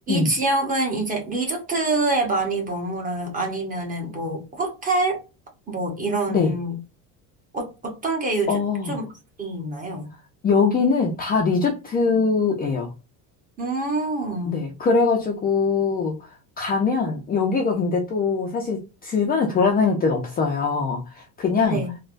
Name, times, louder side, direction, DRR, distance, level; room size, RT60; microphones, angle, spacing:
voice 1, 0.1-5.2 5.7-6.8 7.5-8.6 8.9-9.1 9.4-10.1 13.6-14.7 21.6-21.9, right 2 dB, 20° right, 0.9 m, -26 dB
voice 2, 8.5-9.0 10.4-12.9 14.5-16.3 16.6-21.8, left 4 dB, 20° left, 0.4 m, -22 dB
3.3 x 2.1 x 2.4 m
cardioid pair, 140°, 43 cm